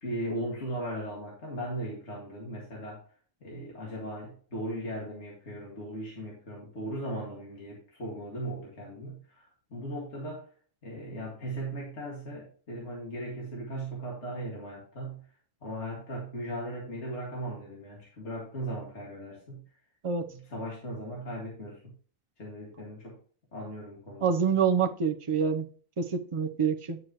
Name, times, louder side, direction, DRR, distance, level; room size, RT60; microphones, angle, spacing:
voice 1, 0.0-3.0 3.4-10.5 10.8-15.3 15.6-19.6 20.3-21.9 22.4-23.2 23.5-24.3, right 1 dB, 55° left, -3 dB, 2.5 m, -38 dB
voice 2, 24.2-25.6 26.0-27.0, right 6 dB, 30° right, 6 dB, 0.6 m, -26 dB
10.0 x 6.5 x 3.0 m, 0.43 s
omnidirectional pair, 1.4 m